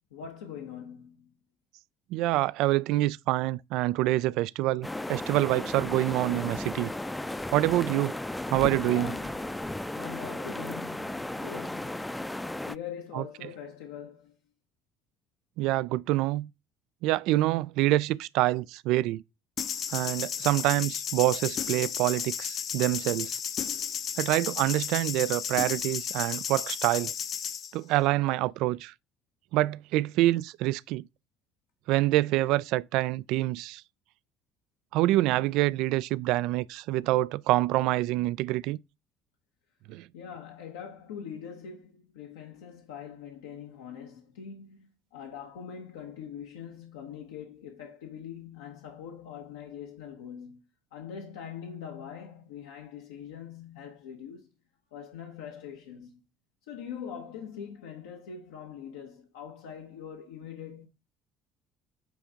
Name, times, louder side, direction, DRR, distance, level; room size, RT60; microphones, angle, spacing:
voice 1, 0.1-1.3 8.8-9.6 9.9-12.4 12.7-14.4 40.1-54.5 54.9-56.2 56.7-60.9, left 8 dB, 75° left, 0.9 m, -43 dB
voice 2, 2.1-6.9 7.5-8.2 8.5-9.1 13.1-13.2 15.6-16.5 17.0-19.2 19.9-23.4 24.2-27.1 27.7-28.9 29.5-31.1 31.9-33.8 34.9-38.8 39.9-40.1, right 17 dB, 65° right, 0.3 m, -26 dB
sound 1, 4.8-12.8, left 1 dB, 10° left, 0.5 m, -35 dB
sound 2, 19.6-27.7, left 8 dB, 50° left, 0.8 m, -33 dB
9.2 x 3.3 x 3.7 m
figure-of-eight pair, 55°, 0 cm